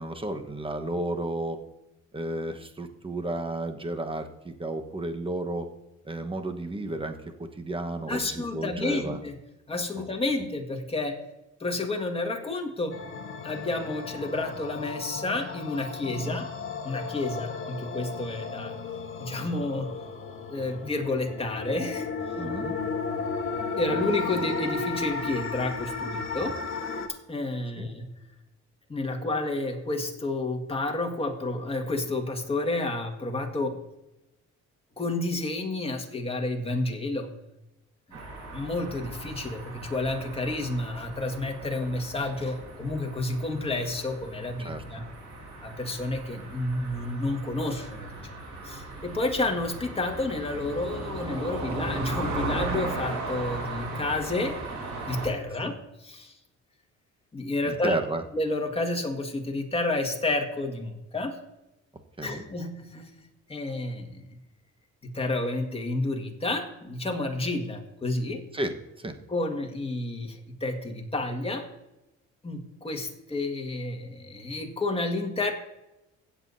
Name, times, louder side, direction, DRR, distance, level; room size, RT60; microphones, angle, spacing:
voice 1, 0.0-1.6 2.1-5.7 6.0-9.2 10.0-10.1 16.3-16.4 22.4-22.7 27.8-27.9 44.6-44.8 55.6-55.7 57.6-58.2 62.2-62.4 68.5-69.2, right 2 dB, 15° right, 6 dB, 1.2 m, -32 dB
voice 2, 8.1-9.3 9.7-11.2 11.6-13.0 13.4-16.5 16.8-18.8 19.2-19.9 20.5-22.3 23.8-26.6 27.3-28.1 28.9-33.8 35.0-37.3 38.1-38.2 38.5-45.0 45.6-48.1 48.6-54.6 55.1-55.7 56.0-56.3 57.3-57.9 58.3-61.4 62.2-63.1 63.5-64.2 65.0-68.4 69.3-71.7 72.4-75.5, left 2 dB, 20° left, 2 dB, 1.8 m, -30 dB
sound 1, 12.9-27.1, left 4 dB, 45° left, 1.4 m, -34 dB
sound 2, 38.1-55.3, right 2 dB, 90° right, 3.3 m, -37 dB
16.0 x 8.1 x 2.7 m, 0.93 s
cardioid pair, 90°, 30 cm